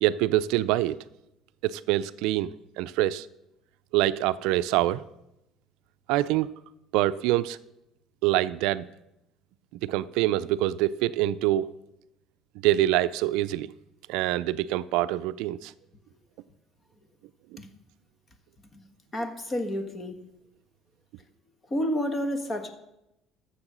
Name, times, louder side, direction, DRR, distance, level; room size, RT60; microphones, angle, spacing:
voice 1, 0.0-1.0 1.6-3.3 3.9-5.0 6.1-6.5 6.9-7.6 8.2-8.9 9.8-11.7 12.6-13.7 14.1-15.7 17.5-17.6, right 14 dB, 85° right, 15 dB, 0.4 m, -25 dB
voice 2, 19.1-20.2 21.7-22.7, equal, 25° left, 7 dB, 1.4 m, -30 dB
13.5 x 7.2 x 6.2 m, 0.88 s
cardioid pair, 130°, 0 cm